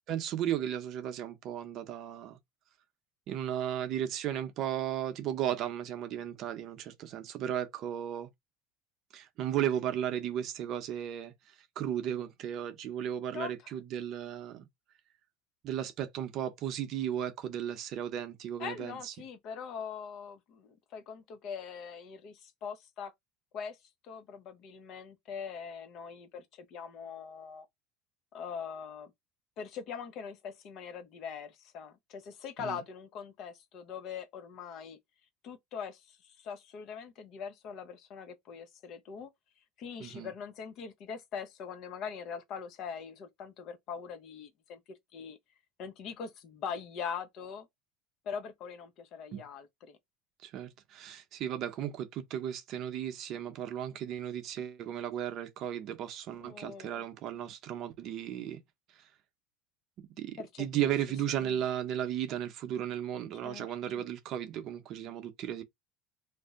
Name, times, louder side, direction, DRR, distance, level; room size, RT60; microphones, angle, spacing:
voice 1, 0.1-2.4 3.3-8.3 9.1-11.3 11.8-14.7 15.6-19.1 32.6-32.8 40.0-40.3 49.3-49.4 50.4-58.6 60.2-65.6, right 10 dB, 55° right, 0.6 m, -35 dB
voice 2, 18.6-23.1 23.5-23.8 24.0-27.7 28.3-29.1 29.6-35.0 35.4-39.3 39.8-44.8 45.1-45.4 45.8-47.7 48.2-50.0 56.4-57.0 60.4-60.9 61.3-61.6 63.4-63.7 64.0-64.1, left 6 dB, 55° left, 0.7 m, -42 dB
2.6 x 2.1 x 3.5 m
supercardioid pair, 110°, 0 cm